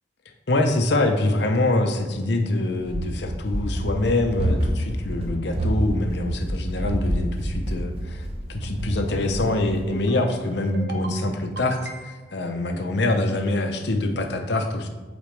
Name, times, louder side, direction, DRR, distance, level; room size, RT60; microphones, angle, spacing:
voice 1, 0.5-14.9, left 2 dB, 60° left, 5 dB, 0.7 m, -25 dB
Run, 2.8-9.9, right 1 dB, 30° right, 0.8 m, -28 dB
sound 1, 9.1-9.6 9.9-10.4 10.7-11.2 11.6-12.3, right 1 dB, 55° right, 0.9 m, -36 dB
8.3 x 4.0 x 3.3 m, 1.2 s
head